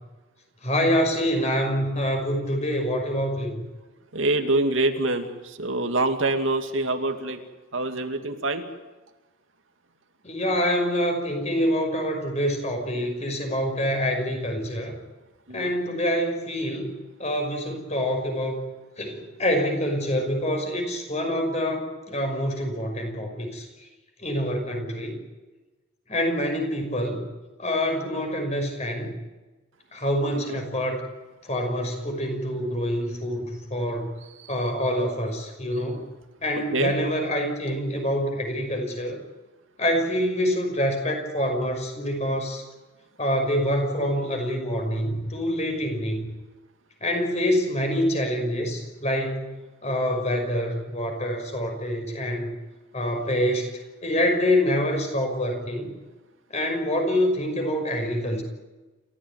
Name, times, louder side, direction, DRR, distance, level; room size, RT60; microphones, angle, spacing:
voice 1, 0.6-3.6 10.2-15.0 15.5-18.6 19.0-23.7 24.2-25.2 26.1-27.2 27.6-29.2 29.9-31.0 31.4-34.1 34.5-36.1 36.4-39.2 39.8-42.6 43.2-46.3 47.0-49.5 49.8-52.6 52.9-53.7 54.0-55.9 56.5-58.4, equal, 35° left, 4 dB, 5.9 m, -26 dB
voice 2, 4.1-7.4 7.7-8.6 15.5-15.7 30.5-30.6 36.7-36.9, right 2 dB, 70° right, 5 dB, 2.4 m, -25 dB
29.0 x 15.0 x 9.4 m, 1.2 s
head